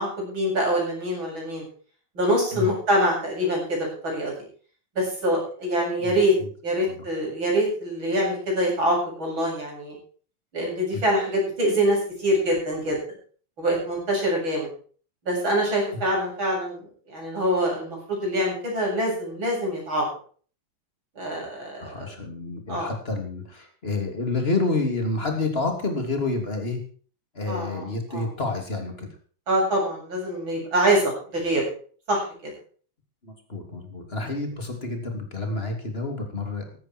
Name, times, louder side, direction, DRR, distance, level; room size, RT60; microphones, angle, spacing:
voice 1, 0.0-1.6 2.2-4.3 5.0-6.3 6.6-9.9 10.5-13.0 13.6-14.7 15.3-20.1 21.2-22.1 22.7-22.9 27.5-27.9 28.1-28.3 29.5-31.7 32.1-32.5, equal, 75° right, -2 dB, 8.7 m, -25 dB
voice 2, 6.0-6.5 6.8-7.0 10.9-11.0 21.8-26.8 27.3-29.1 33.2-36.8, left 3 dB, 30° left, 3 dB, 3.4 m, -29 dB
15.0 x 13.0 x 4.6 m, 0.43 s
omnidirectional pair, 2.2 m